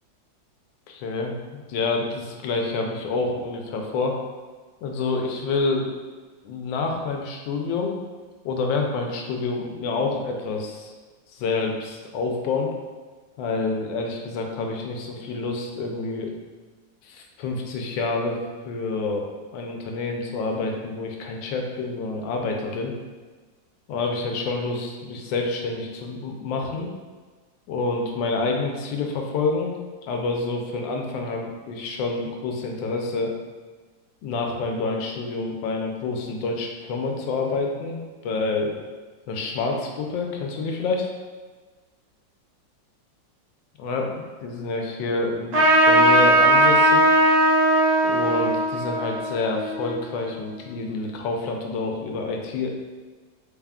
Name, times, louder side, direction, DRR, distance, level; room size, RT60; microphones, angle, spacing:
voice 1, 0.9-4.2 4.8-5.9 6.4-7.9 8.4-10.9 11.3-12.7 13.4-16.3 17.0-18.4 18.6-19.3 19.5-22.9 23.9-26.9 27.7-29.7 30.1-33.3 34.2-38.0 38.2-38.8 39.3-41.1 43.8-45.6 45.8-47.2 48.0-52.7, left 3 dB, 80° left, 2 dB, 1.3 m, -28 dB
Trumpet, 45.5-50.5, right 1 dB, 55° right, 1.0 m, -19 dB
4.1 x 2.3 x 3.5 m, 1.4 s
omnidirectional pair, 2.0 m